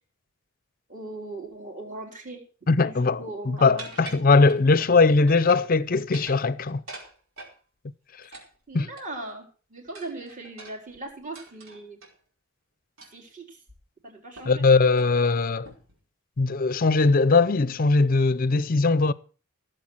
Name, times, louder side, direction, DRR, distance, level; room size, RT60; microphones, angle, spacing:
voice 1, 0.9-4.4 8.7-12.0 13.1-13.6 14.0-14.6, right 2 dB, 40° right, 4.0 m, -39 dB
voice 2, 2.7-3.2 3.5-6.8 8.7-8.9 14.5-15.7 16.4-19.1, left 3 dB, 40° left, 0.6 m, -20 dB
sound 1, 3.8-4.9 5.3-5.8 6.0-7.6 8.3-9.3 9.9-12.1 13.0-13.3 13.7-13.8 14.4-14.6 14.9-15.1 15.6-16.0, right 3 dB, 75° right, 4.7 m, -44 dB
16.0 x 7.9 x 6.3 m
head